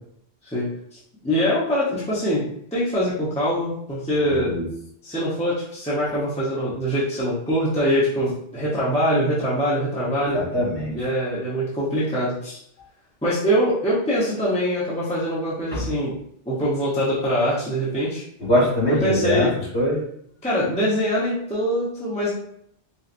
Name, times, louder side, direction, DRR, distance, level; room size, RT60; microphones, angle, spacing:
voice 1, 1.2-4.5 5.0-10.4 10.9-12.6 13.2-16.1 16.5-18.2 18.9-19.5 20.4-22.3, equal, 5° left, -9 dB, 0.9 m, -23 dB
voice 2, 4.2-4.6 10.3-10.9 15.7-15.9 18.4-20.0, left 1 dB, 70° left, -6 dB, 2.0 m, -22 dB
4.4 x 2.7 x 2.6 m, 0.68 s
omnidirectional pair, 1.1 m